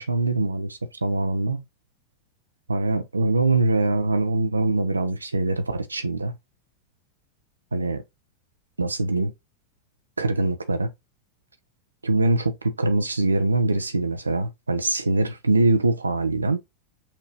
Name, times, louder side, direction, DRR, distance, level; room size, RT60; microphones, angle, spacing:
voice 1, 0.0-1.6 2.7-6.3 7.7-8.0 8.8-9.3 10.2-10.9 12.0-16.6, right 2 dB, 80° right, 0.6 m, -23 dB
5.8 x 3.0 x 2.6 m
figure-of-eight pair, 90°, 0 cm